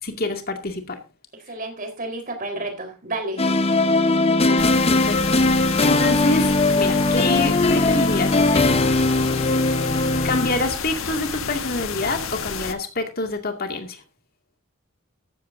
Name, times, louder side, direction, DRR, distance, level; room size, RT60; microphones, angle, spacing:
voice 1, 0.0-1.0 4.2-8.7 10.2-14.0, left 2 dB, 50° left, 2.3 m, -27 dB
voice 2, 1.5-3.4, right 2 dB, 45° right, 4.3 m, -30 dB
sound 1, 3.4-10.8, left 2 dB, 30° left, 0.9 m, -19 dB
sound 2, 4.6-12.7, left 5 dB, 80° left, 1.4 m, -30 dB
sound 3, 6.4-9.1 9.8-10.6, right 2 dB, 60° right, 3.8 m, -47 dB
14.0 x 13.5 x 2.7 m
head